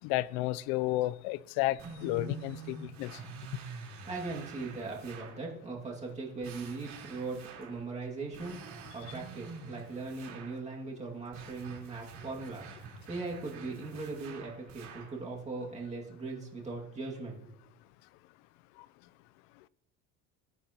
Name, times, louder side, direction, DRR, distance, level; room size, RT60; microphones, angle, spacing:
voice 1, 0.0-3.2, left 17 dB, 80° left, 0.5 m, -32 dB
sound 1, 1.8-5.4 6.4-7.8 8.3-10.6 11.3-15.2, right 5 dB, 50° right, 3.8 m, -47 dB
voice 2, 4.1-8.6 8.9-17.3, right 3 dB, 20° right, 2.1 m, -39 dB
18.5 x 9.3 x 2.9 m
cardioid pair, 150°, 35 cm